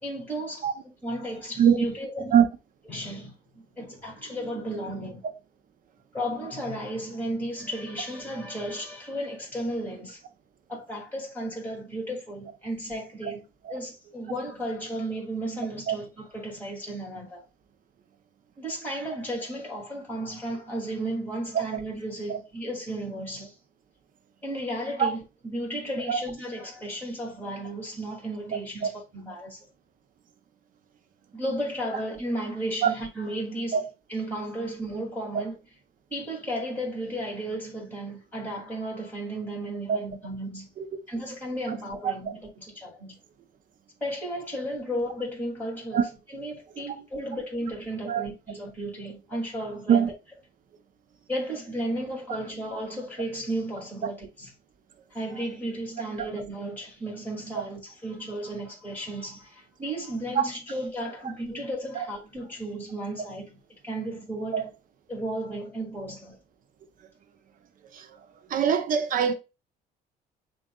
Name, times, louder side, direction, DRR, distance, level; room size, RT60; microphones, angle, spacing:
voice 1, 0.0-2.4 2.9-5.2 6.1-10.2 10.7-13.4 13.7-17.4 18.6-23.5 24.4-29.6 31.3-33.8 34.1-35.6 36.1-40.7 41.1-43.2 44.0-50.1 51.3-54.5 55.1-63.5 63.8-64.7 65.1-66.4, right 1 dB, 10° left, 2.7 m, -34 dB
voice 2, 68.5-69.3, right 8 dB, 55° right, 0.8 m, -22 dB
7.5 x 2.6 x 2.3 m
cardioid pair, 110°, 17 cm